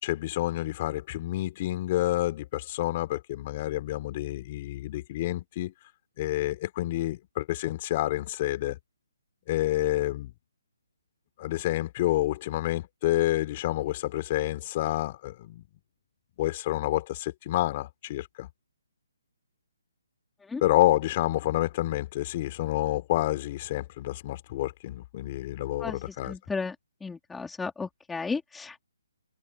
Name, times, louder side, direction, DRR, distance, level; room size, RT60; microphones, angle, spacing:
voice 1, 0.0-5.7 6.2-8.8 9.5-10.3 11.4-15.6 16.4-18.5 20.6-26.3, left 15 dB, 30° left, 4.3 m, -28 dB
voice 2, 25.8-26.8 27.0-28.8, left 4 dB, 5° left, 3.9 m, -34 dB
hypercardioid pair, 160°, 0 cm